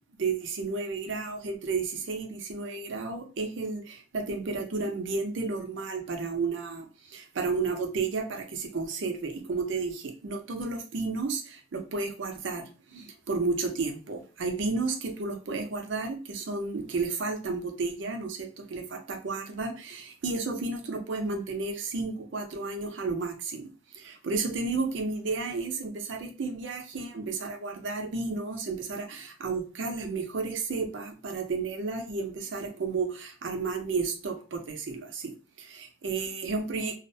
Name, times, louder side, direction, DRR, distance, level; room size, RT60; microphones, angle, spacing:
voice 1, 0.2-37.0, right 4 dB, 65° right, 0.5 m, -32 dB
2.3 x 2.0 x 2.6 m
head